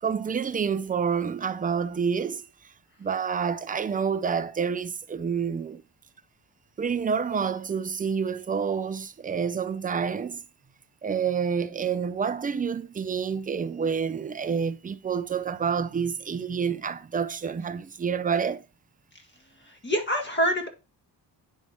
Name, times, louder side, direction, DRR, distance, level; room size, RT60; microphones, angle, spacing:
voice 1, 0.0-2.5 3.0-5.8 6.8-10.4 11.0-18.6, right 6 dB, 20° right, 0.4 m, -28 dB
voice 2, 19.7-20.7, equal, 25° left, 1.7 m, -26 dB
9.4 x 4.3 x 3.4 m
cardioid pair, 115°, 42 cm